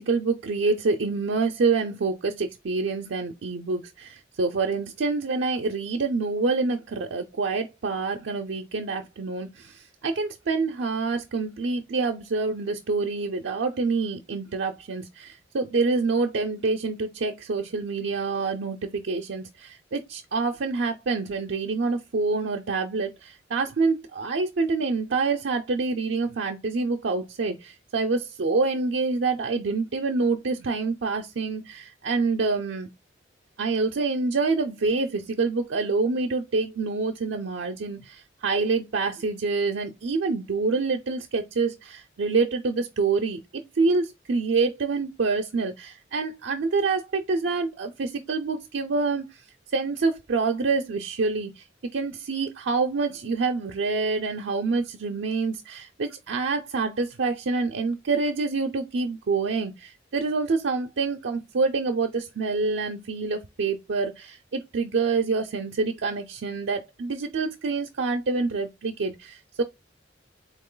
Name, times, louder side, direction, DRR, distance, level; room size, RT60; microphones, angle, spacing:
voice 1, 0.0-32.9 33.6-49.4 49.7-51.6 51.9-69.6, right 4 dB, 90° right, 0.5 m, -27 dB
3.8 x 2.9 x 3.8 m
head